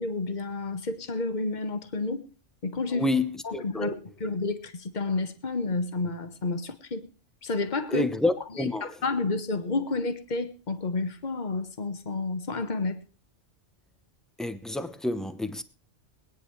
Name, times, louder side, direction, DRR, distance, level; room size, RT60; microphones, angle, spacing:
voice 1, 0.0-2.3 2.6-3.1 3.4-3.9 4.2-7.1 7.4-8.1 8.5-13.0, left 3 dB, 40° left, 1.4 m, -30 dB
voice 2, 2.9-4.0 7.9-8.9 14.4-15.6, left 2 dB, ahead, 0.8 m, -28 dB
23.5 x 9.8 x 3.2 m
omnidirectional pair, 1.2 m